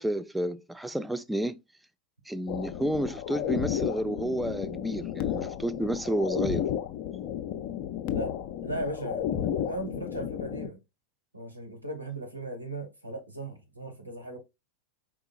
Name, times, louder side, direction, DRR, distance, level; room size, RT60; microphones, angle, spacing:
voice 1, 0.0-1.6 2.3-6.6 9.4-9.6, right 1 dB, 5° right, 0.4 m, -31 dB
sound 1, 2.5-10.7, left 10 dB, 45° left, 0.5 m, -32 dB
voice 2, 8.0-8.3 8.6-10.8 11.3-14.4, right 1 dB, 85° right, 1.5 m, -37 dB
4.6 x 4.5 x 2.4 m
figure-of-eight pair, 90°, 0 cm